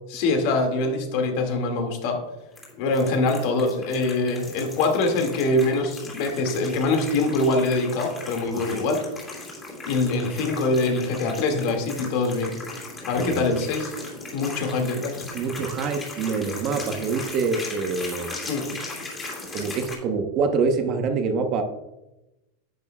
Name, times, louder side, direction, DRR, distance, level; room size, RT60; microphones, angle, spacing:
voice 1, 0.1-2.2 2.8-9.1 9.9-12.6 13.1-13.9 14.3-15.5 18.5-18.7, left 2 dB, 55° left, 3 dB, 2.0 m, -24 dB
sound 1, 2.5-19.9, left 2 dB, 15° left, 2.9 m, -38 dB
voice 2, 13.1-13.5 15.3-18.4 19.5-21.6, right 5 dB, 35° right, 6 dB, 0.9 m, -26 dB
10.5 x 8.9 x 2.3 m, 0.96 s
supercardioid pair, 150°, 0 cm